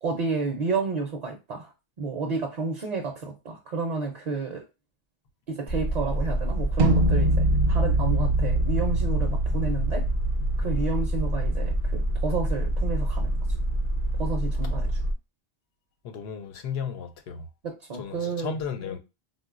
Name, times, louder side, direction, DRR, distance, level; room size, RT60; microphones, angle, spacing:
voice 1, 0.0-1.7 2.0-4.6 5.5-10.1 10.6-13.4 14.2-15.0 17.6-18.5, right 4 dB, 50° right, 0.5 m, -31 dB
sound 1, 5.7-15.1, right 1 dB, 45° left, 0.6 m, -27 dB
sound 2, 6.8-12.8, right 1 dB, 75° right, 0.9 m, -26 dB
voice 2, 16.0-17.4 18.0-19.0, left 6 dB, 85° left, 0.8 m, -34 dB
3.8 x 2.2 x 2.4 m
omnidirectional pair, 1.0 m